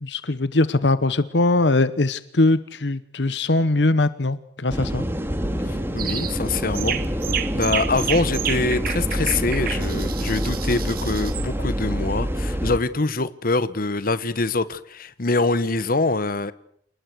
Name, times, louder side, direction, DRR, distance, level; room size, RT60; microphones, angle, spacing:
voice 1, 0.0-5.0, left 2 dB, 70° left, 1.0 m, -21 dB
sound 1, 4.7-12.8, equal, 15° right, 2.6 m, -26 dB
voice 2, 5.7-7.0 7.5-16.5, left 3 dB, 55° left, 1.3 m, -24 dB
sound 2, 6.0-6.3 6.7-11.5, right 10 dB, 55° right, 1.9 m, -30 dB
29.0 x 20.0 x 6.3 m
head